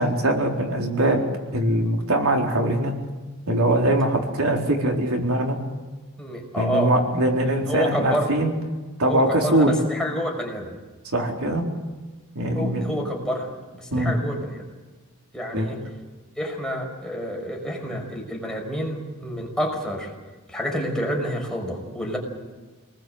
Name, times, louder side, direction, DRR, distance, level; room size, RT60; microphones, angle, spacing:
voice 1, 0.0-2.9 3.5-5.6 6.6-8.5 9.0-9.7 11.1-11.7 12.3-12.9 13.9-14.2 15.5-15.8, right 1 dB, 75° right, 1 dB, 4.1 m, -22 dB
voice 2, 6.2-6.9 7.7-8.4 9.0-10.7 12.5-14.7 15.3-15.8 16.4-20.1 20.5-22.2, equal, 5° left, 0 dB, 5.8 m, -28 dB
28.5 x 20.5 x 8.0 m, 1.3 s
head